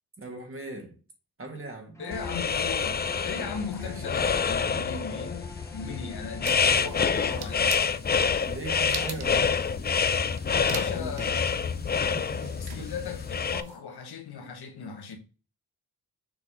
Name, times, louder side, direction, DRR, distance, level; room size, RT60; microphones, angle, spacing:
voice 1, 0.2-1.0 1.4-2.0 3.8-4.1 8.4-9.6 10.4-11.4, right 2 dB, 35° right, 2.1 m, -40 dB
voice 2, 2.0-5.5 5.7-7.9 10.6-11.4 12.6-15.2, left 5 dB, 90° left, 1.5 m, -38 dB
Bowed string instrument, 2.0-7.8, left 2 dB, 10° left, 1.3 m, -45 dB
sound 1, 2.1-13.6, left 6 dB, 25° left, 0.4 m, -27 dB
sound 2, 6.5-13.8, right 7 dB, 90° right, 1.0 m, -44 dB
6.6 x 4.1 x 3.8 m
wide cardioid pair, 100°, 38 cm